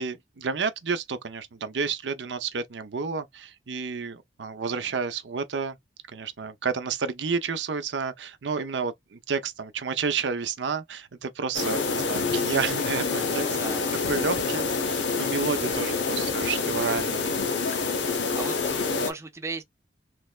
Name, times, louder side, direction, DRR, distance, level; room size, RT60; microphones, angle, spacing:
voice 1, 0.0-5.8 6.1-13.6 14.1-17.3, right 5 dB, 80° right, 0.6 m, -30 dB
sound 1, 11.5-19.1, left 4 dB, 80° left, 0.8 m, -27 dB
voice 2, 13.3-14.1 18.1-19.6, right 3 dB, 15° right, 0.5 m, -38 dB
3.3 x 3.2 x 2.2 m
head